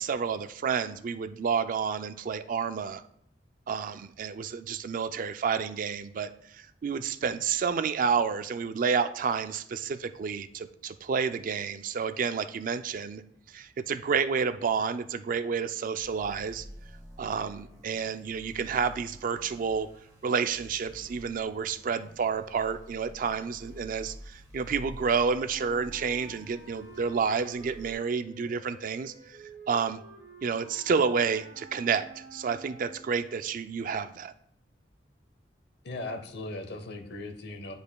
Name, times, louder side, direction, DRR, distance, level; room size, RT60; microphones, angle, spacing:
voice 1, 0.0-3.0 3.7-13.2 13.5-16.7 17.2-19.9 20.2-29.4 29.7-30.0 30.4-34.3, right 6 dB, 50° right, 11 dB, 0.3 m, -30 dB
sound 1, 16.0-27.9, equal, 20° right, 1.5 m, -49 dB
Wind instrument woodwind instrument, 25.4-33.1, right 3 dB, 85° right, 1.9 m, -50 dB
voice 2, 35.8-37.8, left 2 dB, 65° left, 7 dB, 0.8 m, -38 dB
9.8 x 5.2 x 2.2 m, 0.71 s
head